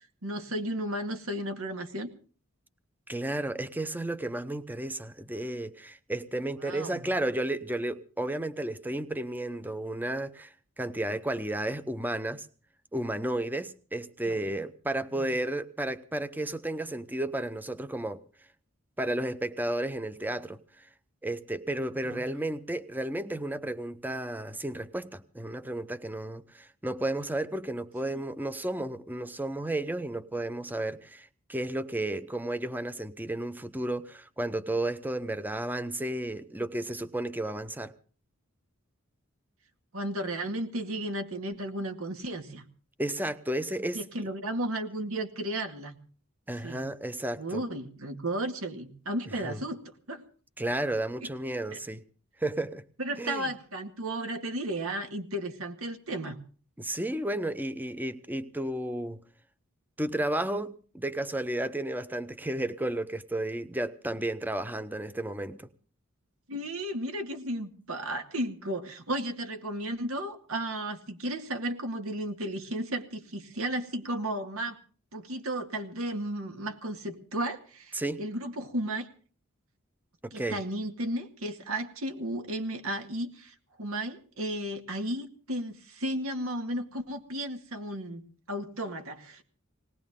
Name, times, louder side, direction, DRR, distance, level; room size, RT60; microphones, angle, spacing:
voice 1, 0.2-2.1 6.6-7.0 14.3-14.4 15.1-15.3 22.1-22.2 28.1-28.2 39.9-42.6 43.9-46.0 46.6-46.8 47.4-49.8 50.1-50.2 51.2-51.3 51.7-51.8 53.0-56.4 66.5-74.8 75.1-79.1 80.3-88.2 88.5-89.4, right 1 dB, 85° right, 2.1 m, -34 dB
voice 2, 3.1-12.5 12.9-18.2 19.0-20.6 21.2-37.9 43.0-44.0 46.5-47.6 49.4-49.6 50.6-52.0 52.4-52.8 53.2-53.5 56.8-59.2 60.0-65.7 77.9-78.2 80.2-80.6, right 1 dB, 10° right, 0.8 m, -33 dB
19.5 x 19.5 x 3.7 m
head